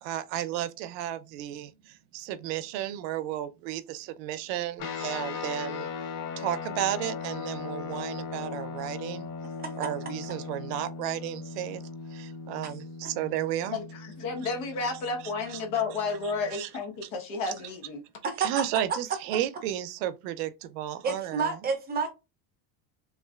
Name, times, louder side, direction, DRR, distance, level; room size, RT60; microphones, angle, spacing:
voice 1, 0.0-5.9 6.4-9.3 9.8-11.8 12.1-13.8 15.5-15.6 16.5-16.7 18.4-21.5, right 12 dB, 80° right, 0.6 m, -33 dB
sound 1, 4.8-16.5, left 5 dB, 45° left, 0.6 m, -38 dB
voice 2, 13.7-18.0, left 4 dB, 80° left, 1.1 m, -32 dB
voice 3, 21.0-22.1, right 4 dB, 20° right, 0.5 m, -30 dB
3.1 x 2.4 x 2.3 m
cardioid pair, 140°, 48 cm